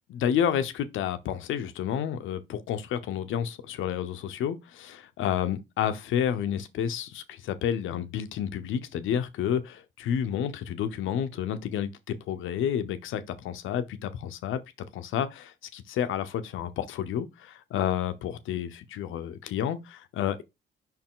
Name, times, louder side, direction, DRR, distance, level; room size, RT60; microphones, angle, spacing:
voice 1, 0.1-14.6 14.9-20.4, left 9 dB, 85° left, 0.9 m, -30 dB
5.6 x 4.7 x 3.7 m
cardioid pair, 90°, 20 cm